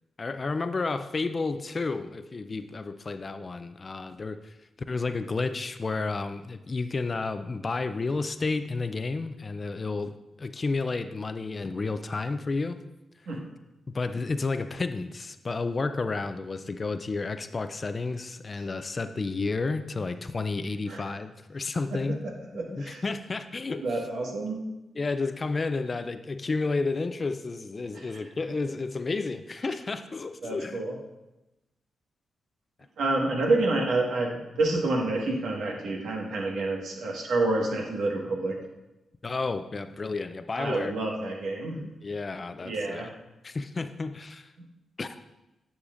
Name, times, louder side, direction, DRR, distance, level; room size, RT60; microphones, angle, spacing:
voice 1, 0.2-4.6 4.9-12.8 13.9-22.2 22.7-23.8 25.0-30.8 39.2-40.9 42.0-43.1 43.4-44.5 45.0-45.2, left 3 dB, 35° left, 10 dB, 0.4 m, -31 dB
voice 2, 22.5-23.0 23.8-24.6 27.9-28.1 30.4-30.9 33.0-38.6 40.6-41.8 42.6-43.1, right 2 dB, 80° right, -1 dB, 1.6 m, -28 dB
9.8 x 6.5 x 2.6 m, 0.97 s
cardioid pair, 90°, 0 cm